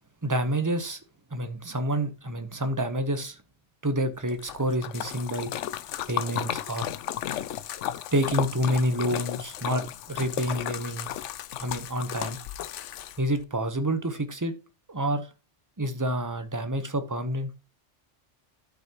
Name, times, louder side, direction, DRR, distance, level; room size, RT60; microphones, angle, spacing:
voice 1, 0.2-1.0 1.3-3.4 3.8-5.5 6.1-6.9 8.1-11.1 11.6-12.4 13.2-14.5 14.9-15.3 15.8-17.5, right 1 dB, 20° right, 0.8 m, -28 dB
Splash splatter, 4.3-13.4, left 11 dB, 80° left, 0.9 m, -34 dB
13.0 x 5.8 x 3.0 m
omnidirectional pair, 1.2 m